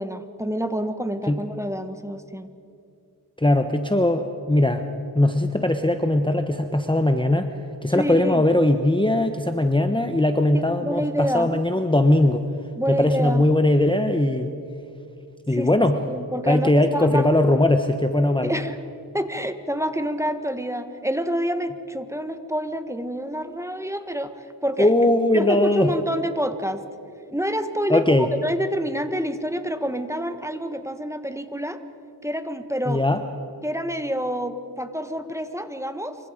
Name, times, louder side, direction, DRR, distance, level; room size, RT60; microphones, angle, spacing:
voice 1, 0.0-2.5 7.9-8.4 10.5-11.5 12.7-13.4 15.5-15.7 16.1-17.3 18.4-18.8 19.1-24.4 24.6-26.8 27.3-28.2 28.4-31.8 32.2-33.0 33.6-36.2, equal, 5° right, 9 dB, 1.5 m, -28 dB
voice 2, 3.4-7.5 7.8-12.4 12.9-14.5 15.5-16.0 16.5-18.5 24.8-25.9 27.9-28.3 32.9-33.2, left 1 dB, 10° left, 7 dB, 1.1 m, -20 dB
27.5 x 24.5 x 5.2 m, 2.7 s
wide cardioid pair, 45°, 41 cm